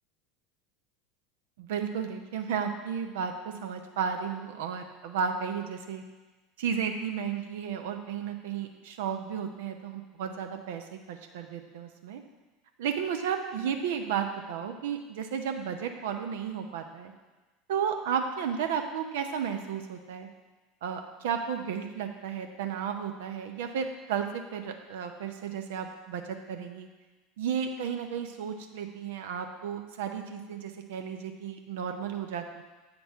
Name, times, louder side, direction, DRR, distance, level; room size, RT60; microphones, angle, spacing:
voice 1, 1.6-6.0 6.6-12.2 12.8-17.1 17.7-20.3 20.8-26.9 27.4-32.6, right 7 dB, 70° right, 5 dB, 0.6 m, -33 dB
8.2 x 4.0 x 4.6 m, 1.2 s
hypercardioid pair, 75°, 0 cm